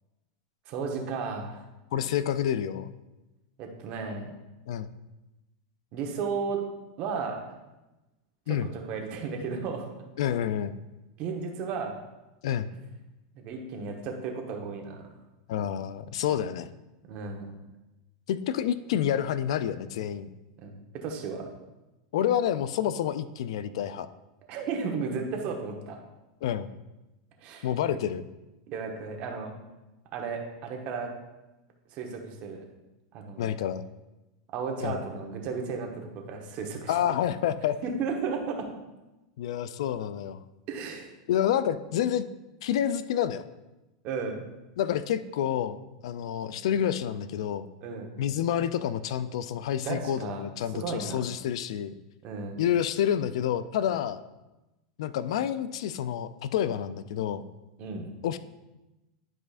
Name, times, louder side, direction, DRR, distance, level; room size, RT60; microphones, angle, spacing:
voice 1, 0.7-1.6 3.6-4.3 5.9-6.6 7.0-7.4 8.5-9.9 11.2-12.0 13.3-15.1 17.1-17.5 20.6-21.5 24.5-26.0 27.4-27.7 28.7-29.5 30.1-31.1 31.9-32.6 33.1-33.6 34.5-36.9 37.8-38.7 40.7-41.1 44.0-44.4 47.8-48.1 49.8-50.5 50.7-51.2 52.2-52.6 57.8-58.1, right 5 dB, 45° right, 2 dB, 1.2 m, -34 dB
voice 2, 1.9-2.9 4.7-4.9 8.5-8.7 10.2-10.8 12.4-12.7 15.5-16.7 18.3-20.3 22.1-24.1 26.4-26.7 27.6-28.3 33.4-33.8 34.8-35.0 36.9-37.8 39.4-40.4 41.3-42.2 42.6-43.4 44.8-47.7 48.2-51.9 52.6-54.2 55.0-57.4 58.2-58.4, left 10 dB, 75° left, 14 dB, 0.3 m, -28 dB
10.5 x 4.9 x 2.5 m, 1.0 s
supercardioid pair, 135°, 3 cm